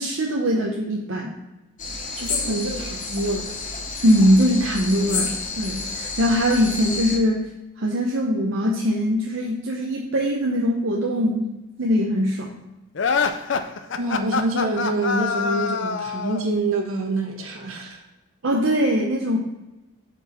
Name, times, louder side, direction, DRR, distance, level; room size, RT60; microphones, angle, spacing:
voice 1, 0.0-1.3 4.0-7.5 7.8-11.5 11.8-12.5 18.4-19.4, equal, 65° right, 0 dB, 0.7 m, -21 dB
sound 1, 1.8-7.2, left 4 dB, 40° left, 0.9 m, -30 dB
voice 2, 2.2-3.5 6.9-7.1 14.0-18.0, right 2 dB, 85° right, 1 dB, 1.3 m, -26 dB
sound 2, 12.9-16.5, left 5 dB, 60° left, 0.5 m, -25 dB
8.0 x 4.6 x 4.2 m, 1.0 s
head